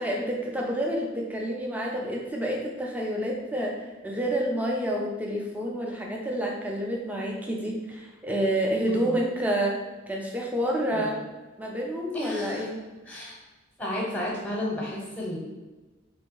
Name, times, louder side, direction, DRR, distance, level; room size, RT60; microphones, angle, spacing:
voice 1, 0.0-3.8 4.0-9.8 10.1-11.2 11.6-12.8, right 1 dB, 10° right, -1 dB, 0.4 m, -28 dB
voice 2, 8.9-9.2 10.9-11.2 12.1-12.7 13.1-13.3 13.8-15.4, left 1 dB, 10° left, -4 dB, 0.8 m, -32 dB
3.3 x 2.6 x 3.8 m, 1.2 s
head